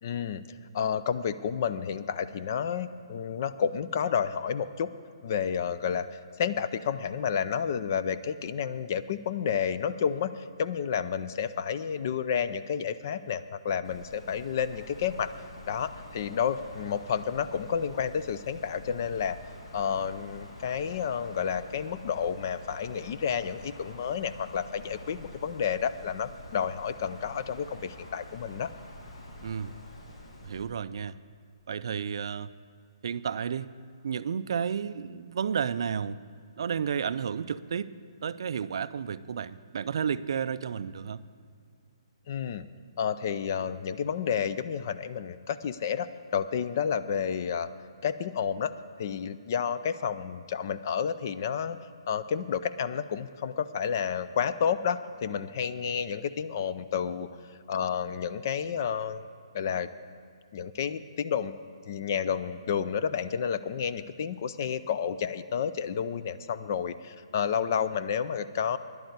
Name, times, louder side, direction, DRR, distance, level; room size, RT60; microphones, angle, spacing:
voice 1, 0.0-4.9 5.2-15.3 15.7-19.4 19.7-28.7 42.3-42.7 43.0-46.1 46.3-47.7 48.0-48.7 49.0-51.8 52.1-57.3 57.7-59.2 59.5-59.9 60.5-61.5 61.9-68.8, left 7 dB, 35° left, 13 dB, 0.3 m, -30 dB
Wind, 13.8-30.6, left 1 dB, 75° left, 2.3 m, -47 dB
voice 2, 29.4-29.8 30.4-31.2 31.7-32.5 33.0-33.7 34.0-36.2 36.6-37.9 38.2-41.2, right 7 dB, 50° right, 14 dB, 0.3 m, -32 dB
11.0 x 8.5 x 8.0 m, 2.2 s
hypercardioid pair, 175°, 3 cm